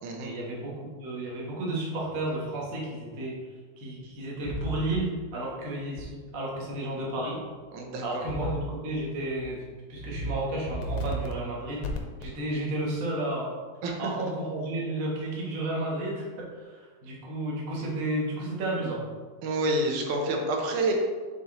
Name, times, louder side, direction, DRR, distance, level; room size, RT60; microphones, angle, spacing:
voice 1, 0.2-7.4 8.0-9.6 9.9-11.8 12.2-13.5 14.0-16.3 16.5-19.0, right 1 dB, 45° right, -4 dB, 1.1 m, -32 dB
sound 1, 4.5-5.0 6.0-6.1 8.3-8.7 9.2-9.5 9.9-10.3 10.7-11.3 11.8-12.3, right 1 dB, 80° left, 1.3 m, -33 dB
voice 2, 7.7-8.2 13.8-14.1 19.4-20.9, right 2 dB, 80° right, 2 dB, 2.3 m, -28 dB
7.3 x 4.2 x 3.8 m, 1.5 s
omnidirectional pair, 3.4 m